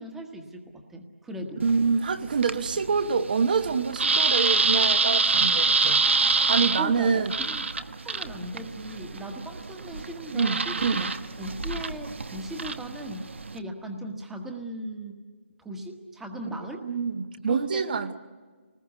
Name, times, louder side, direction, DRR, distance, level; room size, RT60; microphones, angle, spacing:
voice 1, 0.0-1.6 6.8-11.1 11.4-15.2 15.6-16.9 17.4-18.1, right 1 dB, 5° right, 1.3 m, -38 dB
voice 2, 1.6-6.0 6.5-7.3 10.3-11.0 16.8-18.1, right 5 dB, 45° right, 1.1 m, -26 dB
sound 1, 1.6-13.6, right 4 dB, 70° right, 1.1 m, -27 dB
28.5 x 20.0 x 8.4 m
figure-of-eight pair, 165°, 7 cm